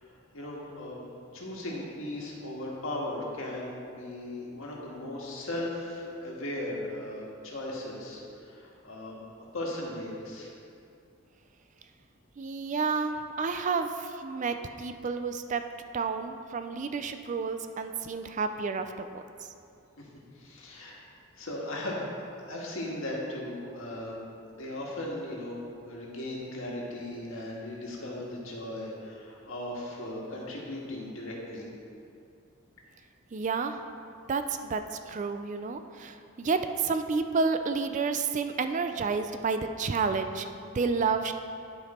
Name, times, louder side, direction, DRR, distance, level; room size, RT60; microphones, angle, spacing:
voice 1, 0.3-1.0 1.3-9.2 9.5-10.5 20.0-20.1 20.3-21.0 21.4-31.7, left 1 dB, 70° left, -3 dB, 1.7 m, -37 dB
voice 2, 12.4-15.6 15.9-19.5 33.3-33.8 34.3-41.3, right 4 dB, 35° right, 8 dB, 0.4 m, -30 dB
11.5 x 5.1 x 4.3 m, 2.5 s
head